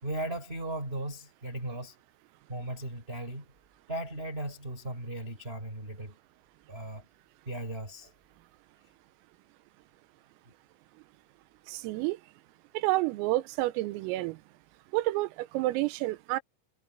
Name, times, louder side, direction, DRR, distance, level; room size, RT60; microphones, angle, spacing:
voice 1, 0.0-2.0 2.5-3.5 3.9-6.2 6.7-7.1 7.4-8.1, right 1 dB, 10° right, 4.5 m, -37 dB
voice 2, 11.7-12.2 12.8-14.4 14.9-16.4, right 18 dB, 90° right, 3.5 m, -29 dB
omnidirectional pair, 5.9 m